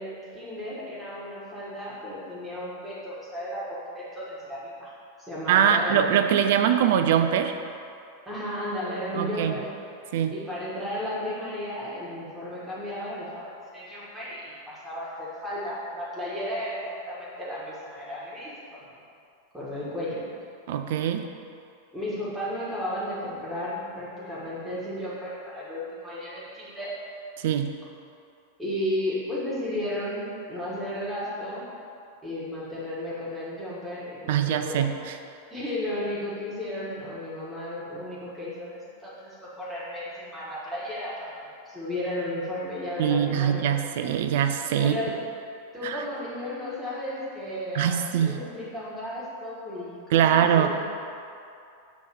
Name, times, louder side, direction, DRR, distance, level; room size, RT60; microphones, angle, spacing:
voice 1, 0.0-4.9 5.2-6.1 8.3-9.6 10.3-18.9 19.5-20.2 21.9-26.9 28.6-31.6 32.2-34.9 35.5-41.3 41.6-43.7 44.8-45.1 45.7-50.7, left 1 dB, 5° right, -9 dB, 1.5 m, -34 dB
voice 2, 5.5-7.5 9.1-9.5 10.1-10.3 20.7-21.2 27.4-27.7 34.3-35.2 43.0-45.0 45.8-46.0 47.7-48.4 50.1-50.7, right 9 dB, 55° right, 8 dB, 0.3 m, -23 dB
7.0 x 3.1 x 4.4 m, 2.5 s
figure-of-eight pair, 90°, 0 cm